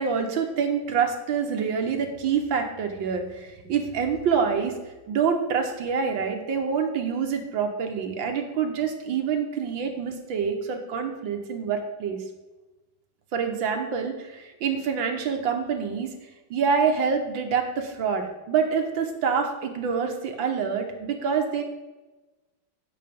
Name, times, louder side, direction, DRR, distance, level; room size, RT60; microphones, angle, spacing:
voice 1, 0.0-4.7 5.1-12.2 13.3-16.1 16.5-21.6, right 6 dB, 75° right, 4 dB, 1.9 m, -26 dB
9.1 x 6.7 x 5.2 m, 1.1 s
omnidirectional pair, 2.2 m